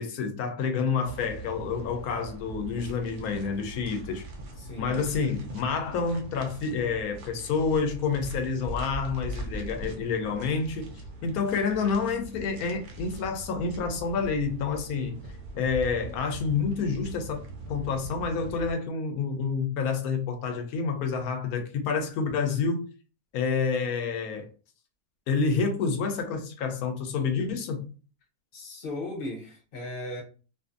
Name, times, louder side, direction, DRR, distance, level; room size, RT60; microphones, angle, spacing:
voice 1, 0.0-4.2 4.8-10.9 11.2-15.2 15.5-17.4 17.7-22.9 23.3-24.5 25.3-27.9, left 5 dB, 75° left, 1.0 m, -28 dB
sound 1, 1.0-18.7, right 2 dB, 85° right, 0.4 m, -41 dB
voice 2, 4.6-5.0 28.5-30.2, left 2 dB, 50° left, 0.7 m, -36 dB
2.5 x 2.5 x 2.4 m
omnidirectional pair, 1.6 m